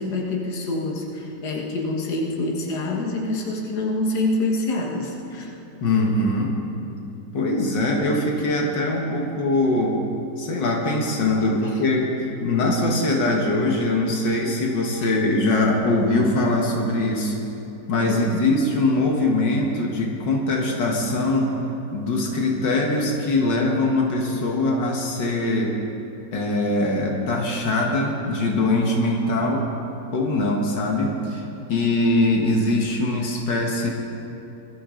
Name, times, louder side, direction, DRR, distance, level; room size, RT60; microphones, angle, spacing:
voice 1, 0.0-5.5 15.0-15.1 18.1-18.4, left 2 dB, 65° left, -1 dB, 2.1 m, -26 dB
voice 2, 5.8-6.6 7.3-10.0 10.4-12.1 12.4-17.4 17.9-21.6 21.9-25.8 26.3-29.7 30.1-33.9, left 2 dB, 85° left, 0 dB, 2.1 m, -22 dB
21.0 x 13.0 x 3.8 m, 2.9 s
omnidirectional pair, 1.9 m